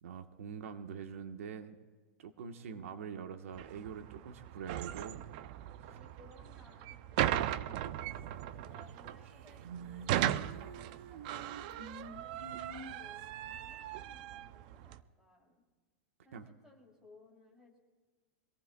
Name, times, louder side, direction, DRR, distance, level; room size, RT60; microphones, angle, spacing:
voice 1, 0.0-1.8 2.2-5.2 5.8-6.0 16.3-16.5, right 7 dB, 90° right, 7 dB, 1.2 m, -44 dB
voice 2, 2.7-3.0 5.8-7.9 8.6-15.6 16.2-17.8, left 2 dB, 5° right, -1 dB, 3.1 m, -61 dB
sound 1, 3.5-15.0, right 12 dB, 40° right, 0.4 m, -38 dB
sound 2, 8.9-9.0 9.3-13.3, right 4 dB, 65° right, 1.2 m, -47 dB
25.0 x 18.0 x 2.3 m, 1.4 s
supercardioid pair, 175°, 7 cm